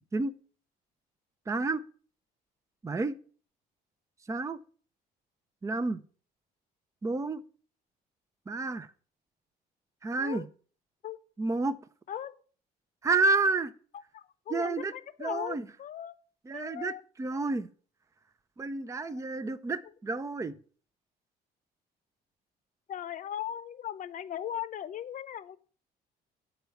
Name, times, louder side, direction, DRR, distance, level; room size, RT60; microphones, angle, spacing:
voice 1, 1.5-1.8 2.8-3.1 4.3-4.6 5.6-6.0 7.0-7.4 8.5-8.9 10.0-10.5 11.4-11.8 13.0-13.7 14.5-14.9 15.2-15.7 16.5-16.9 17.2-17.7 18.6-20.5, right 3 dB, 20° right, 12 dB, 0.6 m, -30 dB
voice 2, 14.1-16.1 16.5-17.0 17.3-17.4 19.0-19.1 22.9-25.6, left 10 dB, 50° left, 14 dB, 0.8 m, -38 dB
9.1 x 4.6 x 7.0 m, 0.43 s
cardioid pair, 110°, 17 cm